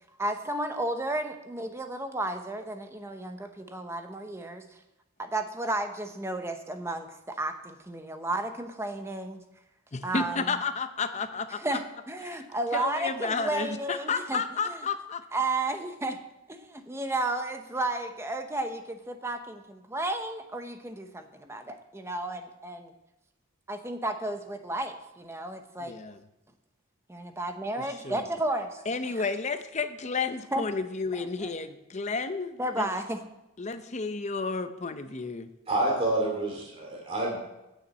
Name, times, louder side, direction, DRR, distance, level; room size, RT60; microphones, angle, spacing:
voice 1, 0.2-4.8 5.2-9.4 10.0-10.5 11.5-11.8 12.1-14.8 15.3-16.2 16.5-22.9 23.7-25.9 27.1-29.1 30.5-30.6 31.4-31.5 32.6-33.2, right 2 dB, 10° right, 6 dB, 0.8 m, -33 dB
voice 2, 9.9-11.8 12.2-12.4 12.7-15.2 25.8-26.2 28.0-28.2 28.9-32.9 33.6-35.5, left 4 dB, 35° left, 9 dB, 0.6 m, -32 dB
voice 3, 35.7-37.4, right 1 dB, 30° right, -2 dB, 2.5 m, -28 dB
9.0 x 7.0 x 7.5 m, 0.95 s
head